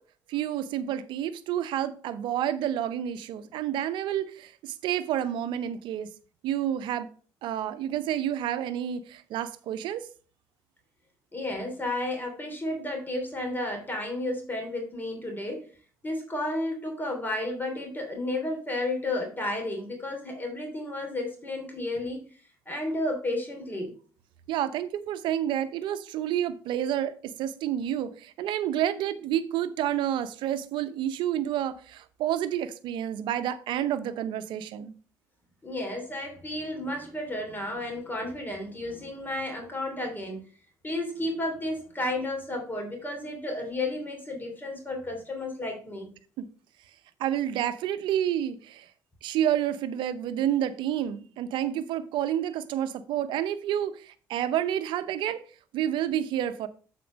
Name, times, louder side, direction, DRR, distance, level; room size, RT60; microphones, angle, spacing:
voice 1, 0.3-6.1 6.4-7.1 7.4-10.1 24.5-34.9 46.4-46.5 47.2-48.9 49.2-55.4 55.7-56.7, right 11 dB, 75° right, 0.6 m, -29 dB
voice 2, 11.3-15.7 16.0-22.4 22.7-23.9 35.6-40.4 40.8-46.1, left 1 dB, 25° left, 2.9 m, -32 dB
7.7 x 4.3 x 5.1 m
supercardioid pair, 60°, 8 cm